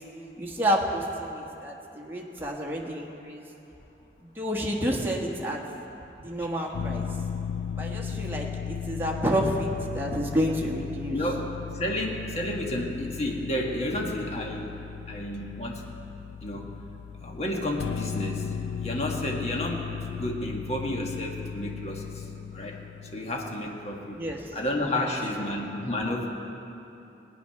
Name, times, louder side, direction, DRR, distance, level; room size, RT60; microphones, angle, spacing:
voice 1, 0.4-3.4 4.2-5.6 6.2-7.1 7.8-11.2 24.2-24.4, equal, 10° right, -2 dB, 1.4 m, -29 dB
sound 1, 6.7-24.1, left 7 dB, 90° left, 0.4 m, -36 dB
voice 2, 11.1-14.7 15.1-15.8 16.4-16.7 17.2-18.5 18.8-22.8 23.1-24.2 24.5-26.3, left 1 dB, 35° left, 0 dB, 1.5 m, -31 dB
18.5 x 9.5 x 5.7 m, 2.9 s
head